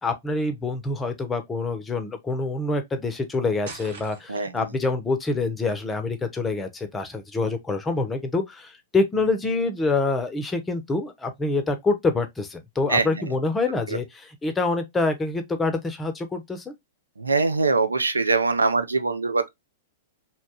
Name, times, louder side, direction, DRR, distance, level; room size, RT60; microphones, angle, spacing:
voice 1, 0.0-16.7, left 3 dB, 15° left, 0.6 m, -26 dB
sound 1, 3.6-4.6, right 4 dB, 65° right, 1.0 m, -41 dB
voice 2, 4.3-4.7 12.9-13.2 17.2-19.5, right 3 dB, 90° right, 0.4 m, -23 dB
2.8 x 2.3 x 2.7 m
hypercardioid pair, 105°, 0 cm